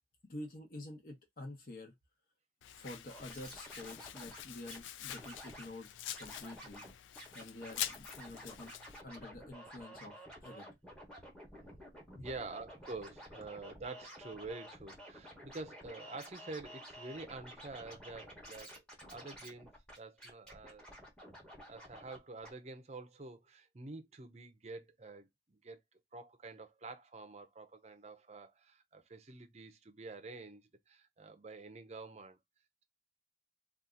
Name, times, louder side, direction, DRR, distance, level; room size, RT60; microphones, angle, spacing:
voice 1, 0.2-1.9 2.7-5.9 6.2-6.8 7.3-8.7 9.0-10.1 10.4-10.6 12.1-12.3, left 1 dB, 50° left, 1.0 m, -48 dB
Domestic sounds home sounds, 2.6-9.0, left 12 dB, 90° left, 0.3 m, -46 dB
Scratching (performance technique), 3.1-4.8 5.1-5.7 6.1-6.9 7.2-22.2 22.4-22.5, equal, 5° left, 1.1 m, -52 dB
voice 2, 12.2-18.8 19.1-19.7 20.0-20.8 21.7-25.8 26.1-32.4, right 3 dB, 35° right, 0.6 m, -48 dB
2.8 x 2.4 x 3.7 m
head